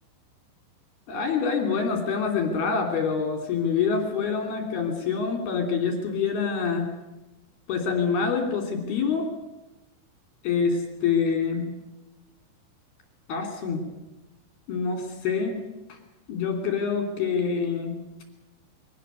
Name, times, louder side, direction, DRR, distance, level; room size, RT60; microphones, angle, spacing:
voice 1, 1.1-6.9 7.7-9.3 10.4-11.7 13.3-13.8 14.7-15.6 16.3-17.9, left 5 dB, 55° left, 3 dB, 4.6 m, -26 dB
23.5 x 18.5 x 8.2 m, 0.98 s
omnidirectional pair, 5.8 m